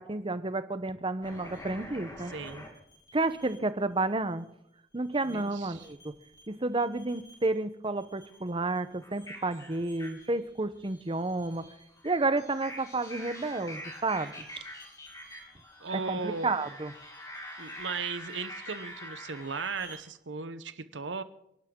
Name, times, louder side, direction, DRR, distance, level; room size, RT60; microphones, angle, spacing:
voice 1, 0.0-2.3 3.1-4.5 4.9-6.0 6.5-11.6 12.0-14.4 16.1-16.9, right 2 dB, 30° right, 13 dB, 0.9 m, -31 dB
sound 1, 1.2-3.6 5.1-6.4 6.7-7.6 8.0-20.0, equal, 20° left, 4.0 m, -46 dB
voice 2, 2.3-2.6 5.2-5.9 15.8-16.5 17.6-21.2, right 4 dB, 80° right, 12 dB, 0.9 m, -37 dB
28.5 x 11.5 x 3.8 m, 0.78 s
head